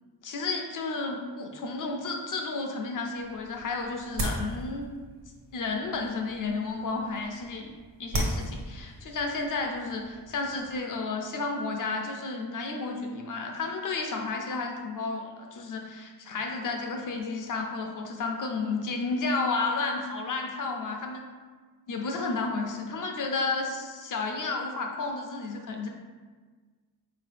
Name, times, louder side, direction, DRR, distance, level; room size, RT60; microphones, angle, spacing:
voice 1, 0.2-4.9 5.5-7.7 8.0-21.2 21.9-25.9, left 3 dB, 50° left, 2 dB, 0.6 m, -32 dB
sound 1, 3.1-10.8, right 1 dB, 55° right, 1.0 m, -37 dB
4.3 x 2.9 x 3.3 m, 1.4 s
wide cardioid pair, 125°, 40 cm